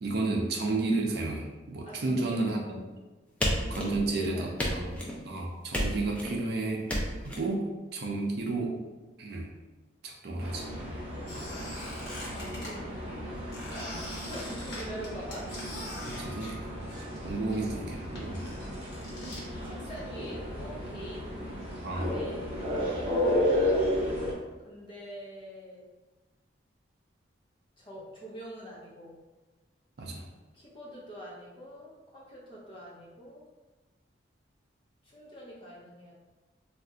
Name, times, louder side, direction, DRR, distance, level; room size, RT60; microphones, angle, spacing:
voice 1, 0.0-2.8 3.7-4.8 5.3-6.8 7.2-8.9 9.2-9.5 10.0-10.7 16.1-16.6 17.2-18.5 21.8-22.1 30.0-30.2, right 2 dB, 55° right, 1 dB, 0.4 m, -31 dB
voice 2, 1.8-2.4 3.9-4.9 12.1-14.0 14.3-15.6 19.6-23.1 23.4-23.9 24.6-25.9 27.8-29.2 30.5-33.4 35.0-36.1, right 1 dB, 25° left, -6 dB, 0.7 m, -44 dB
sound 1, 3.4-4.2 4.6-5.2 5.7-6.4 6.9-7.4, equal, 5° left, 0.3 m, -31 dB
sound 2, 10.4-24.3, left 1 dB, 30° right, 0.8 m, -33 dB
Squeak, 11.2-12.7 13.5-17.2 17.5-19.4, left 1 dB, 60° left, 1.0 m, -43 dB
2.5 x 2.2 x 3.7 m, 1.2 s
head